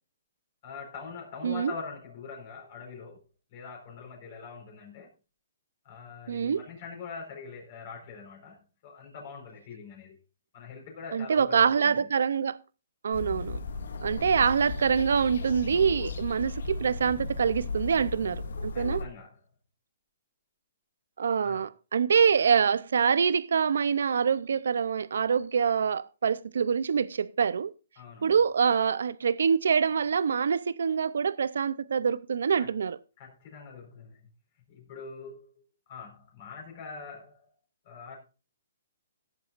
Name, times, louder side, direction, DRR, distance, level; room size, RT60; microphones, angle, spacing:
voice 1, 0.6-3.2 3.5-5.1 5.8-10.2 10.5-12.1 14.2-14.5 18.7-19.4 21.4-21.7 28.0-28.4 32.6-32.7 33.2-34.2 34.7-37.5 37.8-38.2, left 5 dB, 35° left, 4.5 m, -43 dB
voice 2, 6.3-6.6 11.1-12.6 13.0-13.6 14.0-19.0 21.2-27.7 28.2-33.0, right 6 dB, 75° right, 0.6 m, -25 dB
sound 1, 13.1-19.1, left 3 dB, 75° left, 2.1 m, -35 dB
17.5 x 8.2 x 2.5 m
hypercardioid pair, 165°, 0 cm